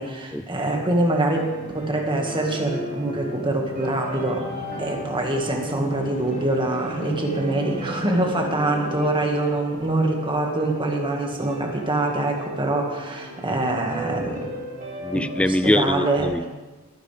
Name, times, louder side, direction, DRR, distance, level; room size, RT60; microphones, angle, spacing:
voice 1, 0.0-4.5 4.8-14.5 15.1-15.2 15.6-16.3, right 2 dB, 20° right, 1 dB, 1.8 m, -24 dB
sound 1, 0.6-15.6, right 1 dB, 40° right, 3.6 m, -37 dB
sound 2, 3.3-9.9, left 1 dB, 30° left, 1.3 m, -37 dB
voice 2, 15.0-16.5, left 1 dB, 5° left, 12 dB, 0.3 m, -23 dB
21.0 x 10.0 x 3.4 m, 1.2 s
head